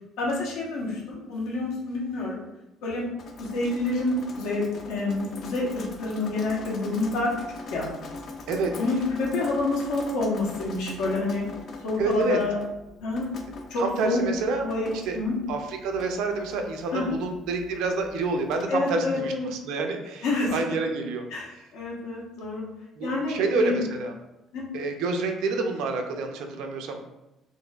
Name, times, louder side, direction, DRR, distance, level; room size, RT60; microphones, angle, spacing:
voice 1, 0.2-2.4 2.8-3.1 3.4-7.3 7.7-7.9 8.8-11.4 11.8-12.6 13.0-13.3 13.7-14.2 14.6-15.4 16.9-17.1 18.7-19.5 20.2-20.6 21.3-21.5 21.7-22.6 23.0-23.9 24.5-24.6, left 2 dB, 85° left, -3 dB, 1.1 m, -28 dB
Drip, 3.2-18.6, left 2 dB, 45° left, 0.4 m, -42 dB
voice 2, 12.0-12.4 13.8-14.7 15.1-15.2 15.5-20.2 20.5-21.3 23.0-24.1 24.7-27.0, right 3 dB, 80° right, 4 dB, 0.5 m, -28 dB
4.0 x 3.1 x 2.4 m, 0.95 s
cardioid pair, 155°, 0 cm